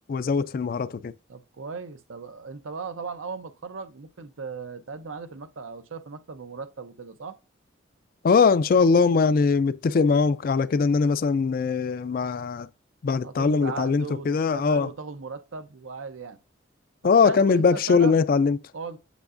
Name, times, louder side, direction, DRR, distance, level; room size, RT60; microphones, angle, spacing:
voice 1, 0.1-1.1 8.2-12.7 13.0-14.9 17.0-18.6, left 5 dB, 45° left, 0.3 m, -21 dB
voice 2, 1.3-7.4 13.2-16.4 17.0-18.2 18.7-19.0, right 4 dB, 85° right, 0.7 m, -37 dB
8.2 x 6.3 x 2.5 m
head